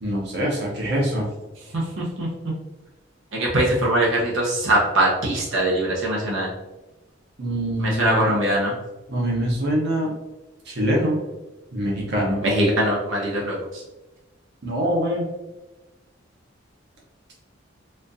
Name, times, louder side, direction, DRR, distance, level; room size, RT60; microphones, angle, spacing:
voice 1, 0.0-1.3 7.4-8.3 9.1-10.1 10.7-11.2 11.7-12.4 14.6-15.3, equal, 60° right, -3 dB, 0.9 m, -24 dB
voice 2, 2.0-2.3 3.3-6.5 7.8-8.7 12.4-13.6, right 1 dB, 85° right, -4 dB, 0.9 m, -21 dB
4.2 x 2.5 x 2.6 m, 1.1 s
head